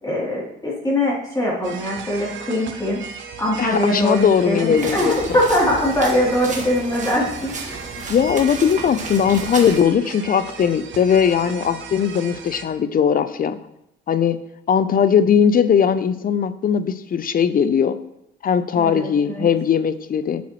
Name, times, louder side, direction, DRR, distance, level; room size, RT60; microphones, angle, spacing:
voice 1, 0.0-3.0 3.4-7.8 18.8-19.5, left 1 dB, 20° left, -6 dB, 3.1 m, -22 dB
sound 1, 1.6-12.6, right 6 dB, 70° right, 1.1 m, -36 dB
voice 2, 3.6-5.2 8.1-13.6 14.1-14.4 14.7-18.0 18.4-20.4, left 7 dB, 45° left, 13 dB, 0.6 m, -19 dB
sound 2, 4.7-9.8, right 3 dB, 40° right, 1.7 m, -33 dB
9.8 x 7.2 x 3.1 m, 0.81 s
cardioid pair, 90°, 20 cm